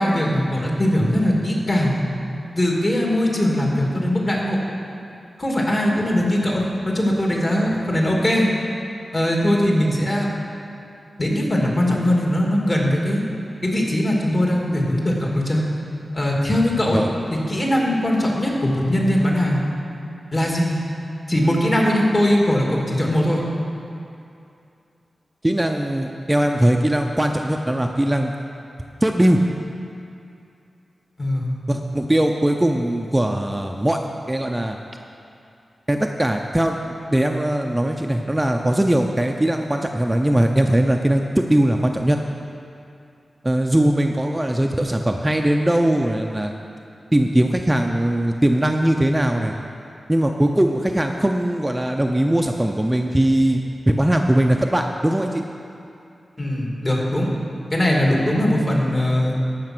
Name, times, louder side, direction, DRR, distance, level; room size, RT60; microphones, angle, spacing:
voice 1, 0.0-2.0 2.5-4.6 5.4-8.5 9.1-10.3 11.2-13.2 13.6-15.6 16.1-17.0 17.3-19.6 20.3-20.8 21.3-23.4 31.2-31.6 56.4-57.3 57.7-59.4, left 1 dB, 35° left, -2 dB, 2.4 m, -20 dB
voice 2, 25.4-28.3 29.0-29.4 31.7-34.0 34.3-34.8 35.9-42.2 43.4-46.5 47.1-49.5 50.1-55.4, right 1 dB, 15° right, 3 dB, 0.6 m, -20 dB
14.0 x 5.8 x 6.1 m, 2.6 s
wide cardioid pair, 70°, 0 cm